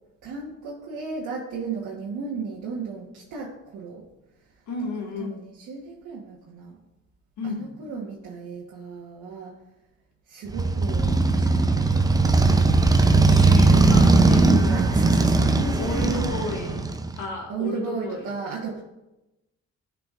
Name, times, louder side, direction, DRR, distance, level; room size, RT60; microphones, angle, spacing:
voice 1, 0.2-4.0 5.0-6.8 7.4-9.5 10.3-12.2 14.7-16.3 17.5-18.8, right 4 dB, 80° right, -4 dB, 1.3 m, -35 dB
voice 2, 4.7-5.4 7.4-7.7 13.3-15.0 15.8-16.8 17.2-18.3, left 3 dB, 75° left, 0 dB, 1.8 m, -33 dB
Motorcycle, 10.5-17.2, right 3 dB, 15° right, 0.5 m, -19 dB
12.5 x 4.9 x 2.5 m, 0.97 s
cardioid pair, 90°, 30 cm